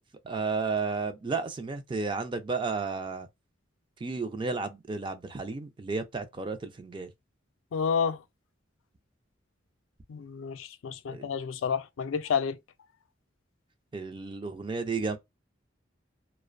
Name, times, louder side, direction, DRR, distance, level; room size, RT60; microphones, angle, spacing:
voice 1, 0.2-3.3 4.0-7.1 11.1-11.3 13.9-15.2, right 4 dB, 25° right, 0.3 m, -32 dB
voice 2, 7.7-8.2 10.1-12.6, left 6 dB, 75° left, 0.4 m, -30 dB
2.5 x 2.1 x 2.4 m
head